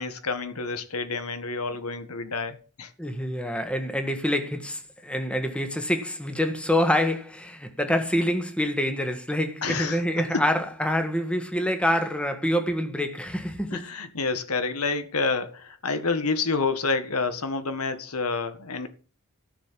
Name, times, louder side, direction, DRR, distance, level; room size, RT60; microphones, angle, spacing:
voice 1, 0.0-2.9 9.6-10.4 13.7-18.9, left 4 dB, 85° left, 1.7 m, -28 dB
voice 2, 3.0-13.9, left 1 dB, 5° left, 1.5 m, -26 dB
14.5 x 6.5 x 7.5 m
head